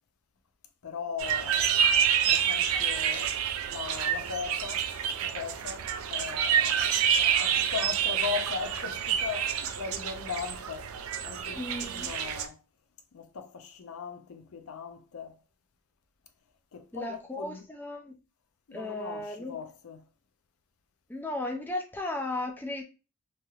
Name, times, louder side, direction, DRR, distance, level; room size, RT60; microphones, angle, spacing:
voice 1, 0.8-3.4 3.7-4.9 5.2-12.6 13.1-15.4 16.7-17.6 18.7-20.1, left 6 dB, 85° left, 0.5 m, -39 dB
sound 1, 1.2-12.5, right 8 dB, 80° right, 0.4 m, -28 dB
voice 2, 11.6-12.1 16.9-18.1 18.7-19.6 21.1-22.8, left 2 dB, 10° left, 0.3 m, -35 dB
3.2 x 2.8 x 2.3 m
head